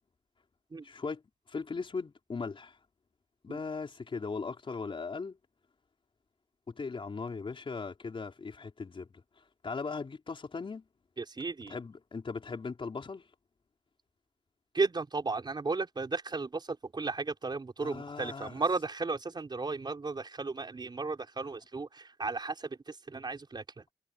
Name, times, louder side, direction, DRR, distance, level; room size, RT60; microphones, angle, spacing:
voice 1, 0.8-1.2 1.5-2.8 3.4-5.4 6.7-9.2 9.6-10.8 11.7-13.2 17.8-18.5, left 4 dB, 50° left, 4.9 m, -38 dB
voice 2, 11.2-11.8 14.7-23.8, right 3 dB, 40° right, 5.7 m, -34 dB
wide cardioid pair, 105°, 12 cm